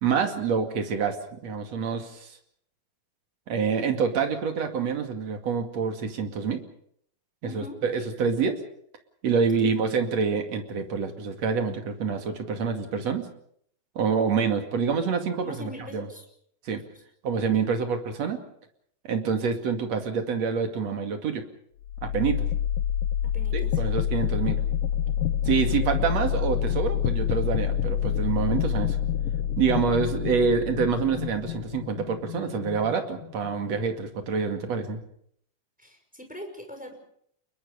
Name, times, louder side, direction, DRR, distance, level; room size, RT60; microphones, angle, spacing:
voice 1, 0.0-1.2 1.4-2.3 3.5-6.6 7.4-8.5 9.2-13.3 13.9-16.1 16.6-16.8 17.2-18.4 19.0-21.4 22.0-22.4 23.5-24.6 25.4-29.0 29.6-35.0, right 6 dB, 45° right, 5 dB, 3.1 m, -27 dB
voice 2, 7.4-7.8 9.4-9.7 15.4-16.3 16.8-16.9 17.6-17.7 23.2-23.9 35.8-36.9, equal, ahead, 4 dB, 5.3 m, -42 dB
sound 1, 21.8-33.7, left 9 dB, 70° left, 2.2 m, -27 dB
29.5 x 22.0 x 5.1 m, 0.66 s
omnidirectional pair, 4.9 m